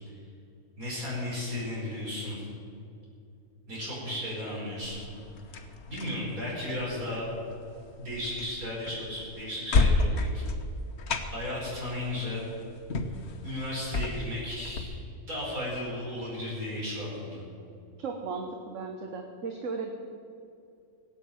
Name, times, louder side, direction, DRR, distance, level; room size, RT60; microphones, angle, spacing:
voice 1, 0.8-2.5 3.7-5.0 5.5-7.3 8.0-10.4 11.3-12.4 13.4-14.9 15.3-17.4, left 1 dB, 80° right, -6 dB, 5.4 m, -35 dB
sound 1, 4.8-14.8, left 3 dB, 50° left, 1.2 m, -32 dB
voice 2, 18.0-19.9, right 4 dB, 60° right, 3 dB, 1.4 m, -36 dB
17.5 x 8.4 x 9.1 m, 2.5 s
omnidirectional pair, 1.5 m